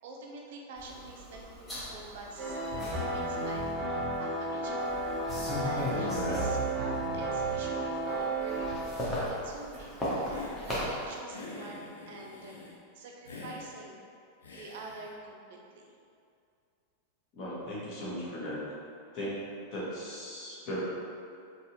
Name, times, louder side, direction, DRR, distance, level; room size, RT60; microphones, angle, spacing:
voice 1, 0.0-5.1 5.6-9.9 10.6-12.6 12.9-14.1 14.5-15.9, right 2 dB, 55° right, -1 dB, 0.4 m, -46 dB
sound 1, 0.8-4.2 4.7-7.0 7.3-11.1, left 1 dB, 15° left, 0.9 m, -38 dB
sound 2, 2.4-8.8, right 2 dB, 30° right, 0.7 m, -32 dB
voice 2, 6.1-6.5 17.3-18.6 19.1-19.4 19.7-20.8, equal, 40° left, -7 dB, 1.1 m, -37 dB
Hiss, 10.2-10.6 11.3-12.8 13.3-13.6 14.4-15.1, left 3 dB, 70° left, 0.5 m, -45 dB
4.0 x 2.4 x 2.7 m, 2.4 s
figure-of-eight pair, 90°, 0 cm